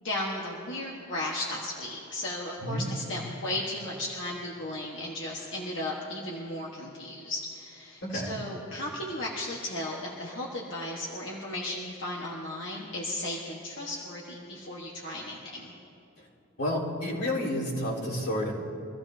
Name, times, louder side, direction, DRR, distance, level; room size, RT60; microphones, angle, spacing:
voice 1, 0.0-15.7, left 1 dB, 60° left, -3 dB, 1.3 m, -35 dB
voice 2, 8.0-8.3 16.6-18.5, left 1 dB, 85° left, -6 dB, 3.8 m, -30 dB
24.5 x 15.0 x 2.8 m, 2.9 s
head